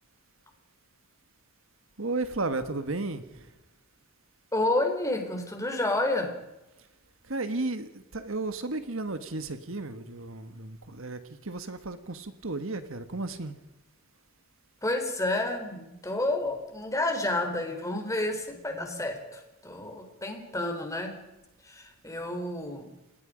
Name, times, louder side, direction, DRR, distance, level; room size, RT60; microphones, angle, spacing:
voice 1, 2.0-3.5 7.2-13.5, right 2 dB, 65° right, 10 dB, 1.6 m, -34 dB
voice 2, 4.5-6.3 14.8-21.2 21.6-22.9, left 2 dB, 15° left, 4 dB, 4.2 m, -30 dB
29.0 x 19.5 x 5.2 m, 0.96 s
head